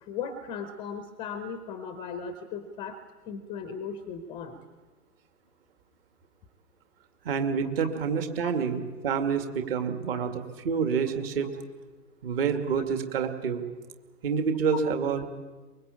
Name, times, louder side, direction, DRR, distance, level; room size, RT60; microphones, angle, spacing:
voice 1, 0.0-3.0 3.3-4.6 8.4-8.5 14.7-14.8, left 6 dB, 10° left, 10 dB, 0.9 m, -37 dB
voice 2, 7.2-11.5 12.2-13.6 14.2-15.3, right 6 dB, 35° right, 7 dB, 2.4 m, -28 dB
23.5 x 21.5 x 8.5 m, 1.3 s
figure-of-eight pair, 125°, 48 cm